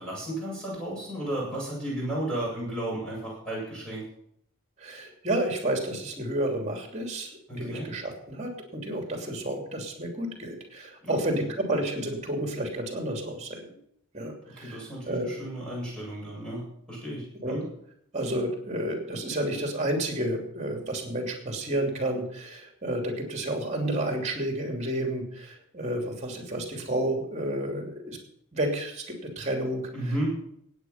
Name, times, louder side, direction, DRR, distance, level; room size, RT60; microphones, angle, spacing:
voice 1, 0.0-4.0 7.5-7.9 11.0-11.2 14.6-16.6 16.9-17.6 29.9-30.3, right 1 dB, 5° left, -5 dB, 8.0 m, -33 dB
voice 2, 4.8-7.3 7.6-13.8 14.1-15.3 17.4-17.6 18.1-28.2 28.5-29.9, right 1 dB, 30° right, 3 dB, 2.9 m, -31 dB
17.5 x 9.1 x 5.8 m, 0.71 s
head